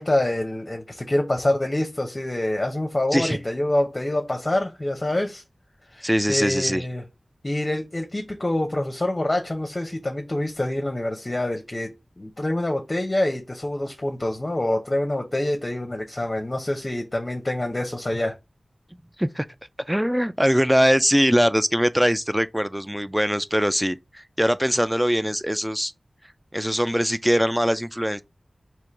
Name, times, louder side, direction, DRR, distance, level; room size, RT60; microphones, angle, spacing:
voice 1, 0.0-5.4 5.9-7.0 7.4-11.9 12.2-18.3, left 1 dB, 35° left, 0.7 m, -26 dB
voice 2, 6.0-6.8 19.2-19.5 19.9-25.9 26.5-28.2, equal, 5° right, 0.4 m, -22 dB
3.7 x 3.0 x 4.3 m
wide cardioid pair, 45°, 0 cm